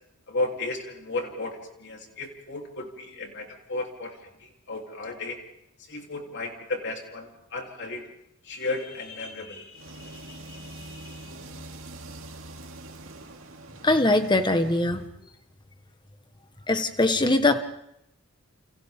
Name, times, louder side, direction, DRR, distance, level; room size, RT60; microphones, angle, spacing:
voice 1, 0.3-5.4 5.9-8.1 8.4-11.3, left 2 dB, 55° left, 2 dB, 3.4 m, -34 dB
sound 1, 9.7-15.1, right 2 dB, 65° right, 2.9 m, -44 dB
voice 2, 13.8-15.0 16.7-17.6, left 2 dB, 20° left, 8 dB, 1.4 m, -21 dB
29.5 x 28.5 x 3.7 m, 0.77 s
head